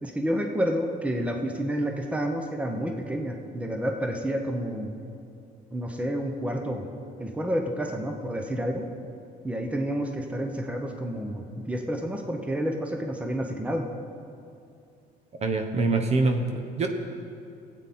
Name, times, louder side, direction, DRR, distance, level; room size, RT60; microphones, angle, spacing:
voice 1, 0.0-4.9 5.7-6.9 7.2-8.8 9.4-13.9, equal, 5° right, 3 dB, 1.0 m, -29 dB
voice 2, 15.4-16.9, right 3 dB, 40° right, 5 dB, 1.1 m, -24 dB
18.0 x 8.4 x 4.3 m, 2.5 s
cardioid pair, 110°, 17 cm